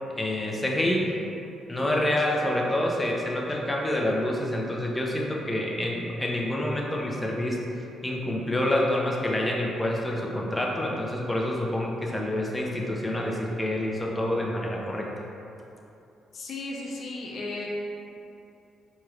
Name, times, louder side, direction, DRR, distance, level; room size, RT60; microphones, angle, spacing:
voice 1, 0.2-1.1 1.7-7.6 8.0-15.1, left 1 dB, 15° left, -2 dB, 0.6 m, -27 dB
voice 2, 16.3-17.7, left 2 dB, 60° left, -2 dB, 0.7 m, -35 dB
4.5 x 3.0 x 2.5 m, 2.8 s
cardioid pair, 90°, 0 cm